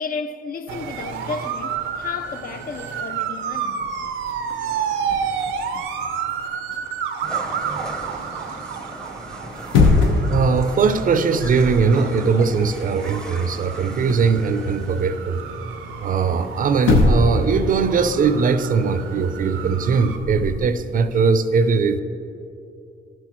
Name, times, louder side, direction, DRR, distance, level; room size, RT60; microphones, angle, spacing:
voice 1, 0.0-3.8 5.0-5.7 7.4-8.0, left 5 dB, 50° left, 0.4 m, -33 dB
sound 1, 0.7-20.2, right 7 dB, 90° right, 0.5 m, -31 dB
sound 2, 1.7-2.0 2.7-2.8 3.0-7.3 9.4-10.4 10.8-11.0 11.3-11.9 12.2-14.4 16.3-16.4 16.8-17.5 17.7-20.6, left 3 dB, 85° left, 0.9 m, -24 dB
sound 3, 7.2-15.1, equal, 5° left, 0.6 m, -39 dB
voice 2, 10.3-15.4 16.0-22.0, right 5 dB, 45° right, 0.4 m, -20 dB
10.5 x 6.1 x 3.0 m
cardioid pair, 90°, 20 cm